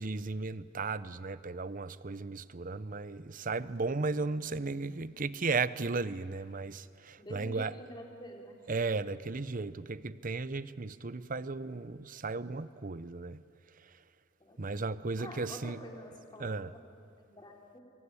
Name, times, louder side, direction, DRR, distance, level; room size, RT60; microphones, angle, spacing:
voice 1, 0.0-7.7 8.7-13.4 14.6-15.8 16.4-16.7, right 3 dB, 40° right, 16 dB, 0.7 m, -35 dB
voice 2, 7.2-8.6 14.4-14.8 15.2-17.8, equal, 20° left, 1 dB, 3.7 m, -48 dB
24.5 x 24.0 x 9.8 m, 2.3 s
head